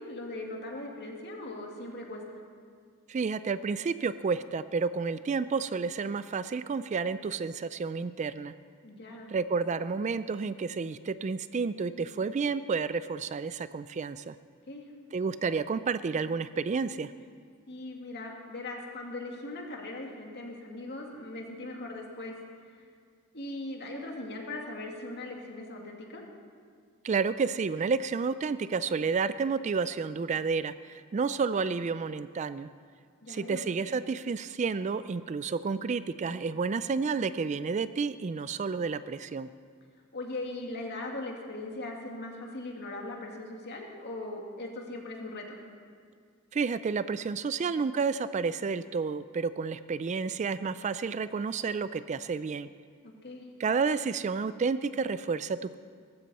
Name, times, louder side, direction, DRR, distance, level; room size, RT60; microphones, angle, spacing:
voice 1, 0.0-2.4 8.8-9.3 14.7-14.8 17.7-22.4 22.7-22.8 23.3-26.2 33.2-33.6 40.1-45.6 53.0-53.5, left 2 dB, 50° left, 1 dB, 2.2 m, -39 dB
voice 2, 3.1-8.5 9.3-14.3 15.1-17.1 27.0-32.7 33.3-39.5 46.5-52.7 53.6-55.7, right 5 dB, 35° right, 14 dB, 0.3 m, -30 dB
18.5 x 15.0 x 4.2 m, 2.1 s
head